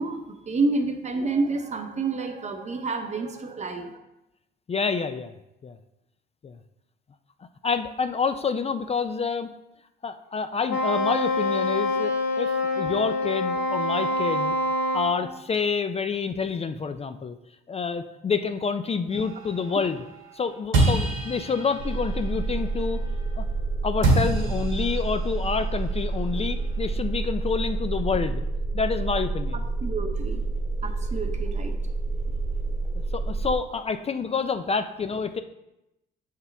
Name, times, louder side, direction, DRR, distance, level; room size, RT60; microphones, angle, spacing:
voice 1, 0.0-4.0 29.8-30.4 30.8-31.8, right 3 dB, 35° right, 6 dB, 0.9 m, -29 dB
voice 2, 4.7-5.3 5.6-5.8 6.4-6.6 7.6-9.5 10.0-14.6 14.9-17.4 17.7-20.0 20.3-23.0 23.4-23.5 23.8-28.4 28.7-29.6 33.1-35.4, left 5 dB, 30° left, 9 dB, 0.4 m, -28 dB
Wind instrument woodwind instrument, 10.7-15.2, left 2 dB, 85° left, 1.3 m, -25 dB
sound 1, 19.1-23.6 24.0-27.4, right 2 dB, 85° right, 1.7 m, -29 dB
sound 2, 21.8-33.6, right 3 dB, 65° right, 1.2 m, -29 dB
6.8 x 4.7 x 3.3 m, 0.91 s
cardioid pair, 90°, 20 cm